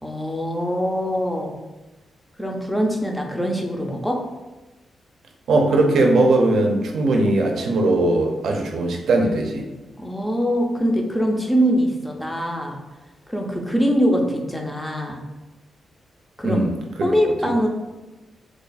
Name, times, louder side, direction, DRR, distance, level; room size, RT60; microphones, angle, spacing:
voice 1, 0.0-1.5 2.4-4.2 10.0-12.8 13.3-15.2 16.4-16.6 17.0-17.7, equal, 5° left, 1 dB, 0.4 m, -23 dB
voice 2, 5.5-9.6 16.4-16.7 17.0-17.1, right 2 dB, 70° right, 2 dB, 0.5 m, -19 dB
3.0 x 2.3 x 4.0 m, 1.1 s
wide cardioid pair, 150°, 0 cm